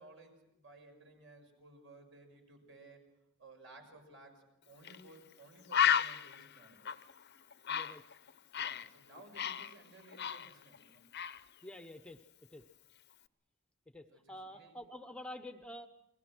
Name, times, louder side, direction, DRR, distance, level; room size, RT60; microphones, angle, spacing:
voice 1, 0.0-3.0 3.4-6.8 8.5-11.0 14.1-14.8, right 2 dB, 60° right, 4 dB, 6.4 m, -57 dB
Bird, 4.8-5.0 5.3-5.4 5.7-8.9 9.2-10.8 11.1-11.4, left 9 dB, 50° left, 0.8 m, -33 dB
voice 2, 7.7-8.0 11.6-12.6 13.9-15.9, left 1 dB, 5° left, 8 dB, 0.9 m, -48 dB
29.5 x 21.0 x 6.2 m, 0.87 s
head